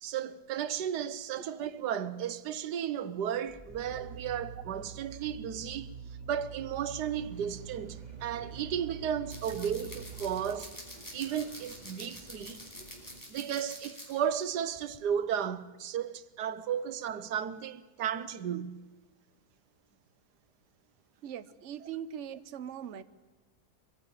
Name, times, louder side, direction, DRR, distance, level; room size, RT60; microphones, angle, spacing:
voice 1, 0.0-5.9 6.3-10.7 11.1-12.6 13.3-18.8, right 9 dB, 90° right, 1.5 m, -34 dB
sound 1, 3.5-10.5, right 6 dB, 5° right, 4.7 m, -46 dB
sound 2, 7.1-13.2, right 1 dB, 25° right, 2.8 m, -54 dB
sound 3, 9.3-14.4 14.8-15.0, equal, 10° left, 4.8 m, -47 dB
voice 2, 21.2-23.0, right 9 dB, 50° right, 1.1 m, -41 dB
24.0 x 16.0 x 9.1 m
omnidirectional pair, 1.7 m